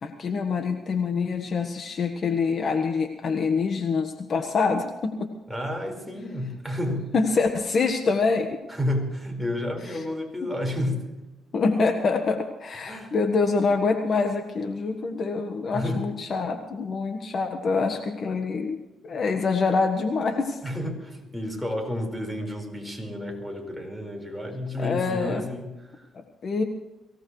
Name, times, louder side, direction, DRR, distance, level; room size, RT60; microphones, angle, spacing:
voice 1, 0.0-5.3 7.1-8.6 11.5-18.8 19.0-20.6 24.8-25.4 26.1-26.6, left 4 dB, 50° left, 5 dB, 1.5 m, -25 dB
voice 2, 5.5-7.1 8.7-11.1 12.8-13.1 15.7-16.1 20.6-26.1, left 1 dB, 5° left, 3 dB, 4.9 m, -31 dB
23.0 x 17.5 x 3.3 m, 1.1 s
cardioid pair, 90°, 0 cm